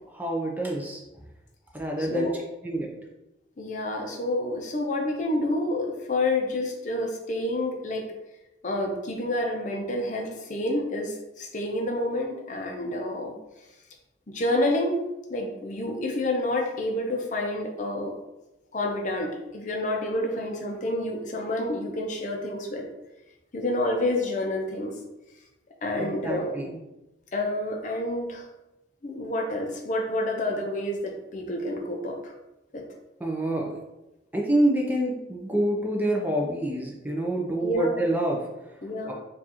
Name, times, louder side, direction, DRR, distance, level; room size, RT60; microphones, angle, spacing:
voice 1, 0.1-1.0 1.7-2.3 2.6-2.9 26.0-26.8 33.2-33.8 34.3-38.8 39.1-39.2, right 1 dB, 10° right, -1 dB, 0.4 m, -27 dB
voice 2, 2.0-2.4 3.6-8.1 8.6-13.3 14.3-15.0 15.3-18.1 18.7-22.9 23.5-24.9 25.8-26.6 27.3-28.4 29.0-32.3 32.7-32.8 37.6-38.0 38.8-39.1, left 1 dB, 40° left, 1 dB, 0.5 m, -28 dB
4.6 x 2.4 x 2.8 m, 0.96 s
head